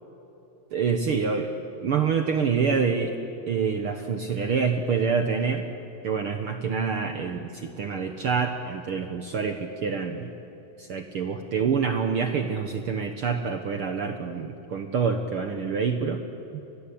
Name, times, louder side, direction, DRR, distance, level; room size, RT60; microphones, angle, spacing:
voice 1, 0.7-1.5 1.8-3.1 3.5-5.6 6.0-10.3 10.8-16.2 16.5-16.6, right 5 dB, 65° right, 6 dB, 1.3 m, -26 dB
29.0 x 21.5 x 8.6 m, 3.0 s
omnidirectional pair, 4.0 m